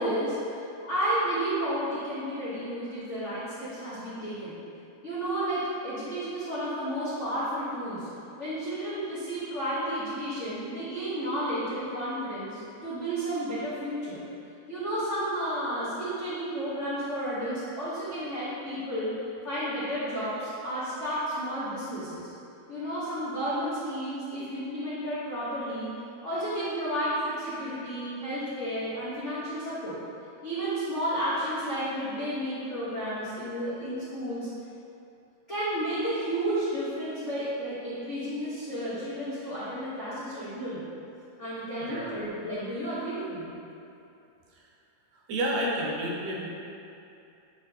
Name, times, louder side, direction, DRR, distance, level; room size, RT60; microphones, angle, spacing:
voice 1, 0.0-4.5 5.0-8.1 8.4-14.2 14.7-19.1 19.4-22.3 22.7-25.9 26.2-30.0 30.4-34.5 35.5-40.9 41.4-43.5, right 1 dB, 80° left, -12 dB, 0.6 m, -32 dB
voice 2, 45.3-46.5, right 1 dB, 75° right, -4 dB, 2.1 m, -30 dB
9.6 x 3.9 x 2.8 m, 2.7 s
omnidirectional pair, 3.3 m